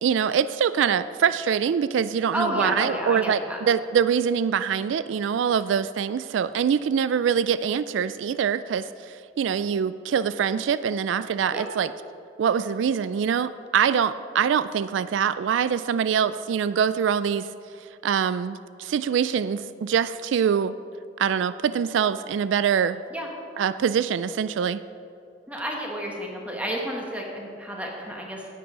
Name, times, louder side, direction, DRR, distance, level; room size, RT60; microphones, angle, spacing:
voice 1, 0.0-11.9 12.4-17.5 18.0-20.7 21.2-23.0 23.6-24.8, right 7 dB, 80° right, 14 dB, 0.3 m, -24 dB
voice 2, 2.3-3.6 11.5-11.7 23.1-23.3 25.5-28.5, equal, 10° right, -1 dB, 1.4 m, -31 dB
10.0 x 8.6 x 5.1 m, 2.4 s
head